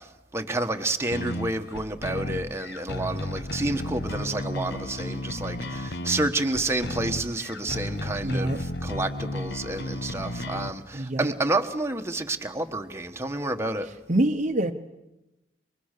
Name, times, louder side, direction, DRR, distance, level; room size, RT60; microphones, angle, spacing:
voice 1, 0.0-13.9, right 2 dB, 15° right, 1.4 m, -29 dB
sound 1, 1.1-10.7, left 1 dB, 65° left, 1.2 m, -33 dB
voice 2, 8.2-8.6 10.9-11.3 14.1-14.7, right 1 dB, 40° right, 1.0 m, -25 dB
30.0 x 24.5 x 6.8 m
head